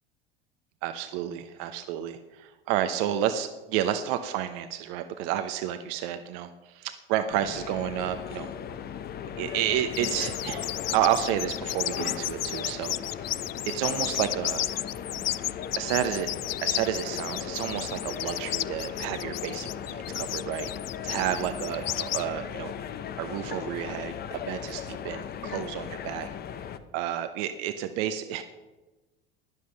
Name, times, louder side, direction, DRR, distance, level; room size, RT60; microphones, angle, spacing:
voice 1, 0.8-8.5 9.4-14.8 15.8-16.3 16.6-20.7 21.0-22.7 23.2-26.3 26.9-28.4, right 11 dB, 50° right, 9 dB, 1.0 m, -31 dB
sound 1, 7.3-26.8, left 8 dB, 30° left, 1.0 m, -37 dB
sound 2, 9.9-22.2, left 13 dB, 70° left, 0.6 m, -33 dB
15.5 x 11.5 x 5.4 m, 1.2 s
figure-of-eight pair, 70°, 30 cm